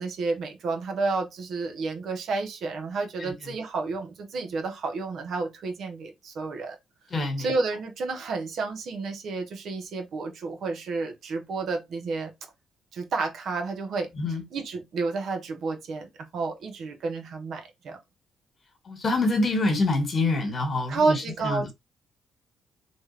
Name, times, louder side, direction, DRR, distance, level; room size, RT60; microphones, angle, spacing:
voice 1, 0.0-6.8 7.4-12.3 12.9-14.1 14.5-18.0 20.9-21.7, right 3 dB, 65° right, 0.9 m, -30 dB
voice 2, 7.1-7.5 14.2-14.4 18.9-21.7, left 2 dB, 40° left, 1.4 m, -26 dB
3.1 x 2.4 x 3.2 m
cardioid pair, 90°, 0 cm